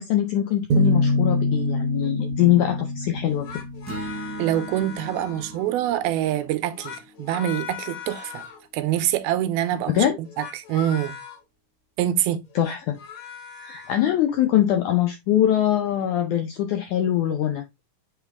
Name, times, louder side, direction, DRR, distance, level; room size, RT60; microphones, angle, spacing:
voice 1, 0.0-3.5 9.9-10.2 12.6-13.0 13.6-17.6, left 11 dB, 75° left, 1.8 m, -22 dB
sound 1, 0.7-4.4, left 2 dB, 70° right, 2.0 m, -24 dB
sound 2, 3.3-5.8 6.6-8.7 10.2-11.4 12.4-14.1, left 8 dB, 60° left, 2.3 m, -39 dB
sound 3, 3.9-8.1, right 2 dB, 5° right, 1.1 m, -39 dB
voice 2, 4.4-8.4 8.7-11.2 12.0-12.4, right 12 dB, 85° right, 2.6 m, -25 dB
8.1 x 3.7 x 3.5 m
omnidirectional pair, 4.3 m